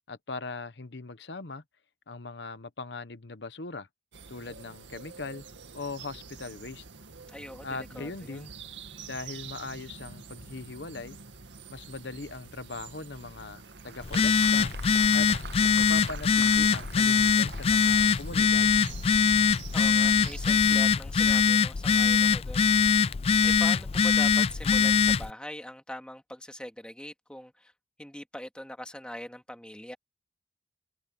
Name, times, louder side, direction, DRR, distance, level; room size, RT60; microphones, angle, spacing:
voice 1, 0.1-1.6 2.1-3.9 4.3-5.4 5.7-6.8 7.6-8.5 9.1-11.2 11.7-14.7 15.1-15.3 15.6-18.8, left 3 dB, 65° left, 1.0 m, -40 dB
sound 1, 4.1-20.7, right 5 dB, 80° right, 2.1 m, -47 dB
voice 2, 7.3-8.5 19.7-22.7 23.4-27.7 28.0-30.0, left 1 dB, 5° left, 2.3 m, -42 dB
Applause, 13.1-18.5, right 6 dB, 60° right, 1.0 m, -46 dB
Telephone, 14.0-25.3, left 6 dB, 30° left, 0.3 m, -23 dB
head